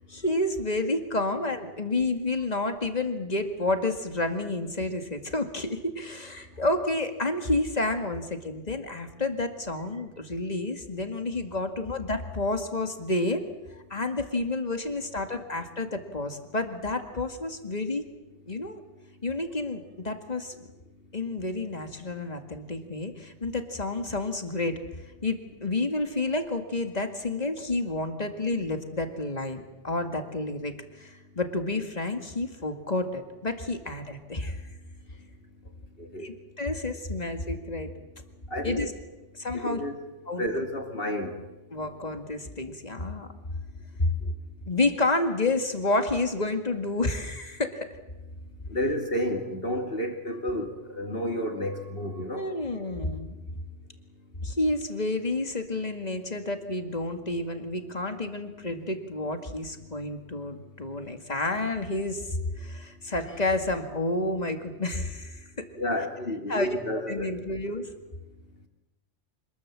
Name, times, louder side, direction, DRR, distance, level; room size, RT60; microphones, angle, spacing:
voice 1, 0.1-13.4 13.9-18.1 18.5-18.8 19.2-20.7 21.1-24.8 25.2-34.6 36.2-37.9 38.6-38.9 39.4-39.8 40.3-40.4 41.7-43.3 44.0-44.1 44.7-47.8 52.3-53.4 54.4-65.4 66.5-66.7 67.1-67.8, left 2 dB, 35° left, 6 dB, 2.2 m, -30 dB
voice 2, 36.0-36.3 38.5-38.9 39.5-40.0 40.4-41.3 48.7-52.5 65.8-67.3, equal, 50° left, 4 dB, 3.0 m, -31 dB
26.0 x 20.5 x 7.6 m, 1.0 s
omnidirectional pair, 1.2 m